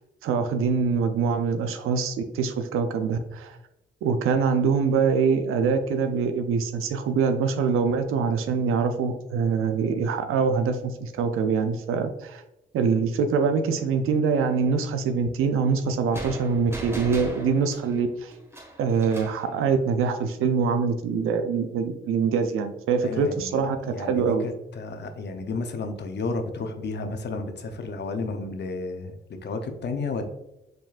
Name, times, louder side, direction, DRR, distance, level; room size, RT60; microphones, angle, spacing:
voice 1, 0.2-3.6 4.0-12.4 12.7-18.3 18.8-24.5, right 5 dB, 80° right, 7 dB, 0.5 m, -24 dB
sound 1, 16.1-19.5, right 1 dB, 10° right, 1.5 m, -38 dB
voice 2, 23.0-30.2, left 3 dB, 55° left, 6 dB, 0.7 m, -32 dB
4.7 x 3.8 x 2.4 m, 0.92 s
supercardioid pair, 55°, 21 cm